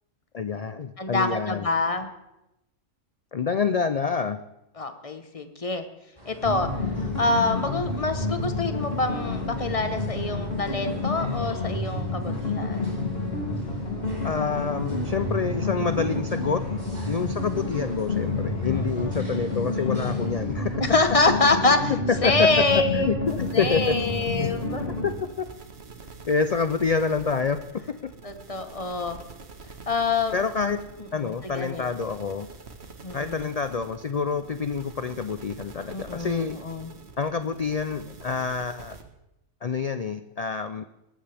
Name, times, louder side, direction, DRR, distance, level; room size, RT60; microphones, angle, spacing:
voice 1, 0.3-1.7 3.3-4.4 14.2-16.6 17.1-20.9 22.1-24.0 24.4-24.5 25.0-25.1 25.4-25.5 26.3-27.6 30.3-30.8 31.1-32.5 33.1-36.6 37.2-39.0 39.6-40.8, left 5 dB, 90° left, 10 dB, 0.3 m, -27 dB
voice 2, 1.0-2.1 4.8-5.8 6.3-6.7 7.1-12.9 18.7-19.2 20.8-21.9 22.2-23.2 23.5-24.8 28.2-29.2 29.9-30.4 31.2-31.9 33.0-33.5 35.9-36.9, left 3 dB, 30° left, 7 dB, 1.0 m, -26 dB
sound 1, 6.2-20.8, equal, 30° right, 3.4 m, -44 dB
sound 2, 6.4-25.1, left 2 dB, 45° left, 3.0 m, -29 dB
sound 3, 23.3-39.0, right 4 dB, 55° right, 1.6 m, -46 dB
21.5 x 12.5 x 3.4 m, 0.90 s
omnidirectional pair, 1.4 m